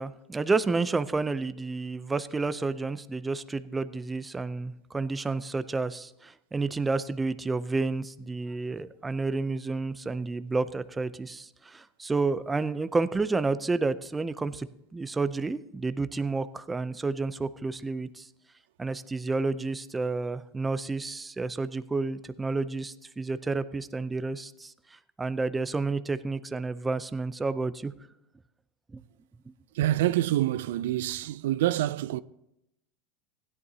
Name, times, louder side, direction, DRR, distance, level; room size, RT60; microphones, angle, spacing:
voice 1, 0.0-14.7 14.9-18.3 18.8-24.7 25.2-27.9 28.9-29.0, right 3 dB, 15° right, 0.5 m, -30 dB
voice 2, 29.7-32.2, right 14 dB, 80° right, 0.3 m, -26 dB
16.0 x 10.5 x 2.8 m
supercardioid pair, 120°, 0 cm